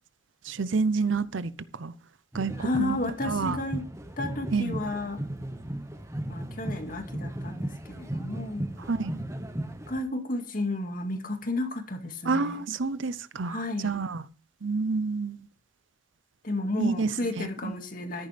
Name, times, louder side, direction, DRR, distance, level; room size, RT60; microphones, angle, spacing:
voice 1, 0.4-1.9 2.3-3.0 3.2-3.6 4.5-4.8 8.9-9.2 12.3-14.2 14.6-15.5 16.8-17.8, right 4 dB, 80° right, 0.7 m, -29 dB
sound 1, 2.3-10.0, right 1 dB, 15° right, 1.1 m, -36 dB
voice 2, 2.6-3.8 4.2-5.2 6.3-8.7 9.9-12.6 13.4-14.0 16.4-18.3, left 2 dB, 45° left, 2.2 m, -32 dB
13.5 x 10.5 x 3.4 m
head